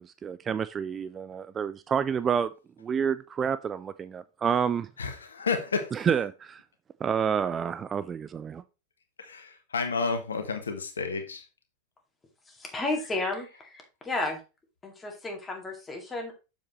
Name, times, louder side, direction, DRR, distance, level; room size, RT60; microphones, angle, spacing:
voice 1, 0.0-2.5 2.8-4.9 5.9-6.6 7.0-8.6, right 7 dB, 20° right, 0.4 m, -29 dB
voice 2, 5.0-6.1 9.2-11.4, left 4 dB, 70° left, 1.3 m, -31 dB
voice 3, 12.5-14.4 14.8-16.3, left 2 dB, 15° left, 2.3 m, -33 dB
7.3 x 7.2 x 3.1 m
figure-of-eight pair, 90°, 0 cm